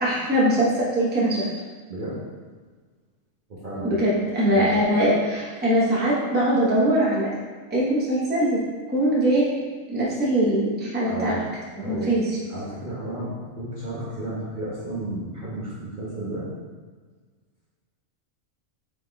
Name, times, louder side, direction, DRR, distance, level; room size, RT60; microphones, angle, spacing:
voice 1, 0.0-1.4 3.8-7.3 7.7-8.6 8.9-9.5 9.9-11.3 11.9-12.2, right 1 dB, 10° right, -7 dB, 0.8 m, -21 dB
voice 2, 3.5-4.0 4.5-4.8 11.0-11.5 11.8-12.1 12.5-16.4, right 1 dB, 45° right, -8 dB, 0.9 m, -33 dB
3.8 x 3.5 x 3.5 m, 1.5 s
omnidirectional pair, 1.4 m